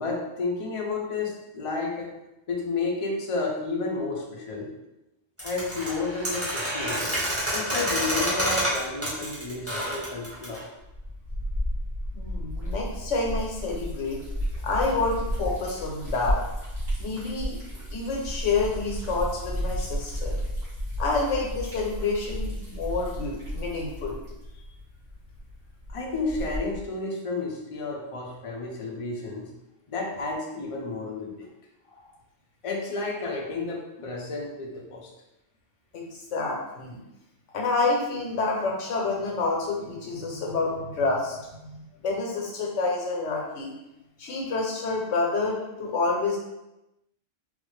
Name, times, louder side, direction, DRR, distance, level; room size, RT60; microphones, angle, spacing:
voice 1, 0.0-2.1 2.5-4.7 5.4-7.1 7.5-10.6 25.9-29.5 29.9-31.5 31.9-32.1 32.6-35.1, left 3 dB, 45° left, 0 dB, 0.4 m, -31 dB
sound 1, 5.4-10.6, equal, 15° right, 0.8 m, -28 dB
Liquid, 10.8-26.9, equal, 50° right, 1.7 m, -33 dB
voice 2, 12.1-14.2 14.6-16.4 17.0-17.6 17.9-20.4 21.0-24.2 35.9-37.0 37.5-43.7 44.2-46.4, left 3 dB, 80° left, -1 dB, 1.1 m, -28 dB
4.0 x 2.1 x 3.1 m, 0.94 s
omnidirectional pair, 1.2 m